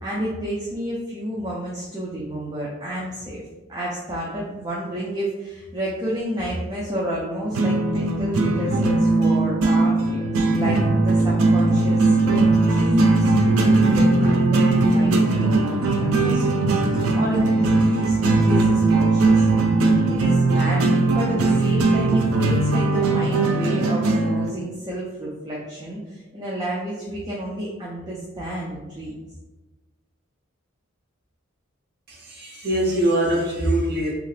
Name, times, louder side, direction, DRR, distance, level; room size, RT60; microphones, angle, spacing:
voice 1, 0.0-3.4 3.7-12.1 12.7-29.2, equal, 20° right, -6 dB, 0.4 m, -31 dB
sound 1, 7.5-24.5, right 2 dB, 85° right, 0.4 m, -19 dB
voice 2, 32.1-34.1, right 1 dB, 50° right, -1 dB, 0.7 m, -23 dB
2.7 x 2.4 x 3.2 m, 1.1 s
head